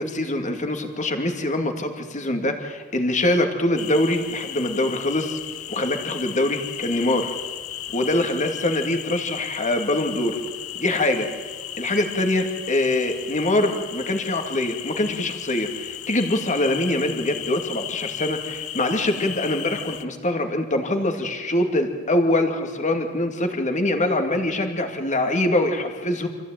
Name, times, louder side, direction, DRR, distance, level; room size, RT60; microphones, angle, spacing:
voice 1, 0.0-5.4 5.7-7.3 7.9-10.4 10.8-11.3 11.8-26.3, left 1 dB, 35° left, 5 dB, 2.5 m, -24 dB
sound 1, 3.8-20.0, left 12 dB, 75° left, 0.9 m, -35 dB
26.0 x 15.5 x 9.2 m, 1.5 s
head